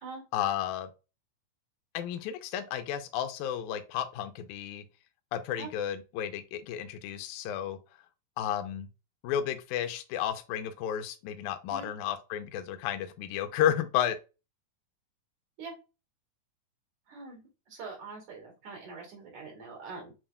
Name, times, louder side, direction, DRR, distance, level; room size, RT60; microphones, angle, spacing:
voice 1, 0.3-0.9 1.9-4.8 5.3-7.8 8.4-8.9 9.2-14.2, left 10 dB, 80° left, 1.9 m, -32 dB
voice 2, 17.1-20.1, right 4 dB, 60° right, 3.5 m, -44 dB
7.2 x 2.9 x 2.2 m
omnidirectional pair, 3.8 m